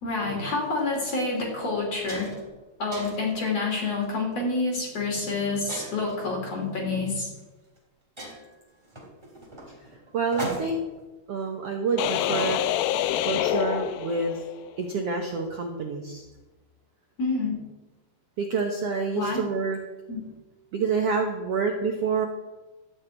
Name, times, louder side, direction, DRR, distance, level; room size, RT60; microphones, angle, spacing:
voice 1, 0.0-2.3 2.8-7.3 17.2-17.6 19.1-19.4 20.1-20.2, left 3 dB, 45° left, -1 dB, 3.9 m, -28 dB
sound 1, 0.6-0.8 1.4-1.5 1.8-2.5 2.9-3.4 4.0-4.3 5.7-6.2 7.3-7.4 7.8-7.9 8.2-10.9, right 1 dB, 10° right, 2.8 m, -38 dB
voice 2, 10.1-10.8 11.3-12.7 13.2-14.4 14.8-16.2 18.4-19.8 20.7-22.3, right 4 dB, 75° right, 2 dB, 1.4 m, -27 dB
sound 2, 12.0-14.6, left 12 dB, 80° left, 2.3 m, -26 dB
13.5 x 6.5 x 8.9 m, 1.2 s
omnidirectional pair, 4.4 m